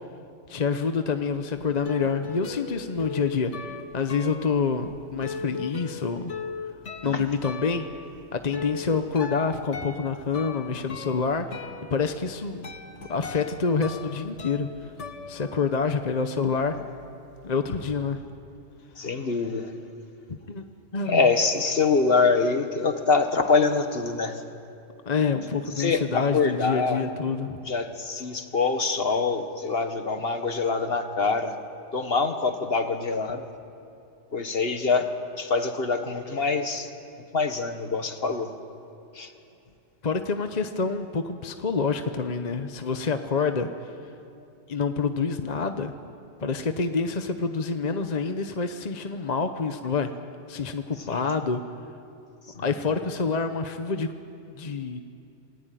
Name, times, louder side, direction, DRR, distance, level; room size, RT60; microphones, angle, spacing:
voice 1, 0.5-3.5 3.9-6.3 7.0-7.9 8.3-12.6 13.1-14.9 15.3-16.7 17.4-18.2 20.3-20.6 20.9-21.3 25.1-27.6 40.0-44.0 44.7-45.9 46.4-50.1 50.5-51.6 52.6-54.1 54.5-55.0, left 5 dB, 40° left, 7 dB, 1.0 m, -27 dB
sound 1, 1.3-16.1 16.4-17.8, left 5 dB, 75° left, 1.8 m, -39 dB
voice 2, 19.0-19.7 21.1-24.4 25.8-27.0 27.7-31.6 31.9-33.5 34.3-35.1 35.4-36.9 37.3-38.5 39.1-39.3 51.0-51.2, left 4 dB, 55° left, 7 dB, 1.7 m, -25 dB
27.5 x 19.5 x 9.2 m, 2.6 s
omnidirectional pair, 1.2 m